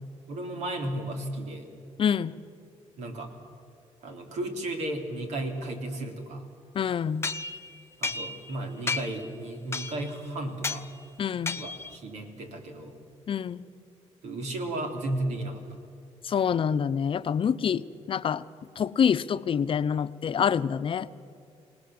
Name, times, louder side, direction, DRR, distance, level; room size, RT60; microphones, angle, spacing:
voice 1, 0.3-1.7 3.0-3.3 4.0-6.4 8.0-10.9 11.6-12.9 14.2-15.6, right 1 dB, 90° right, 4 dB, 3.2 m, -34 dB
voice 2, 2.0-2.4 6.7-7.3 11.2-11.6 13.3-13.6 16.2-18.4 18.8-21.1, left 7 dB, 50° left, 12 dB, 0.7 m, -26 dB
sound 1, 7.2-8.6 8.9-9.3 9.7-10.2 10.6-10.9 11.5-12.0, left 4 dB, 20° left, 0.9 m, -33 dB
27.0 x 18.5 x 7.8 m, 2.4 s
cardioid pair, 100°, 12 cm